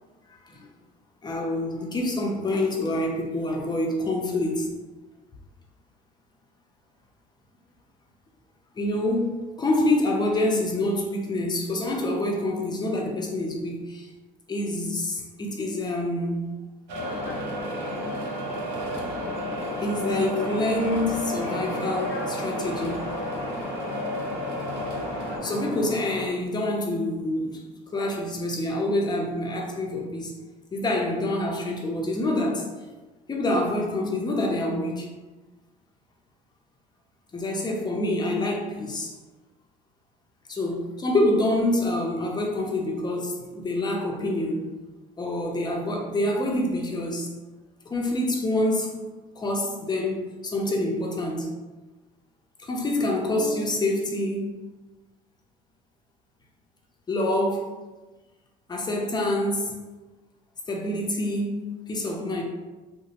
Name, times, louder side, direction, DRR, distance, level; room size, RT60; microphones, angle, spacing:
voice 1, 1.2-4.7 8.8-14.1 14.5-16.5 19.8-23.1 25.4-27.6 27.9-30.3 30.7-32.7 33.3-35.1 37.3-39.1 40.5-44.8 45.2-47.3 47.9-49.0 49.4-51.5 52.6-54.6 57.1-57.7 58.7-59.7 60.7-61.6 61.9-62.4, left 1 dB, 25° left, 0.6 m, -26 dB
sound 1, 16.9-25.4, right 1 dB, 75° right, 0.6 m, -33 dB
sound 2, 17.0-26.3, left 2 dB, 80° left, 0.7 m, -34 dB
2.7 x 2.1 x 2.9 m
supercardioid pair, 90°, 18 cm